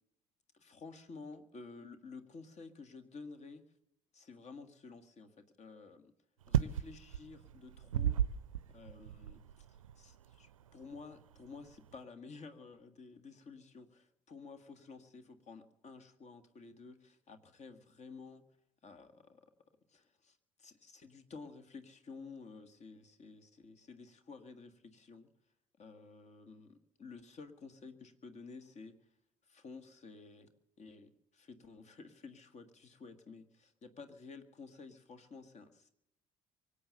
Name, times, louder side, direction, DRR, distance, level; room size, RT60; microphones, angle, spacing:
voice 1, 0.5-3.6 4.1-5.3 5.6-6.1 6.5-8.2 8.7-9.7 10.0-18.4 18.8-19.4 19.9-25.3 25.8-28.9 29.4-30.5 30.8-35.9, left 4 dB, 40° left, 9 dB, 1.8 m, -52 dB
sound 1, 6.4-12.0, right 10 dB, 80° right, 0.5 m, -36 dB
24.0 x 8.3 x 6.8 m, 0.83 s
figure-of-eight pair, 50°, 17 cm